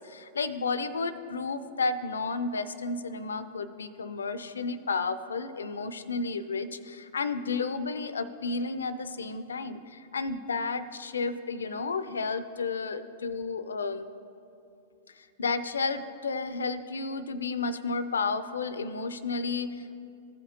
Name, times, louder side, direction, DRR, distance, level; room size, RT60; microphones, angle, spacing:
voice 1, 0.0-14.1 15.2-20.0, left 4 dB, 85° left, 13 dB, 0.4 m, -32 dB
15.0 x 5.0 x 2.9 m, 2.7 s
hypercardioid pair, 105°, 0 cm